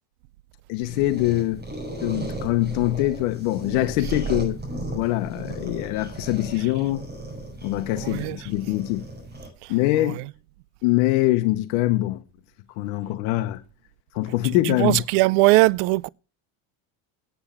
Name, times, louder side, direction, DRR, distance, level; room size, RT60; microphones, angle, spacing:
voice 1, 0.7-1.6 2.0-4.6 4.9-7.0 7.6-9.0 9.7-10.2 10.8-12.2 12.8-13.6 14.1-15.0, left 17 dB, 80° left, 1.1 m, -23 dB
sound 1, 0.8-9.5, right 2 dB, 20° right, 6.1 m, -35 dB
voice 2, 8.0-8.4 14.8-16.1, right 21 dB, 85° right, 0.6 m, -19 dB
9.7 x 7.9 x 7.1 m
cardioid pair, 130°, 43 cm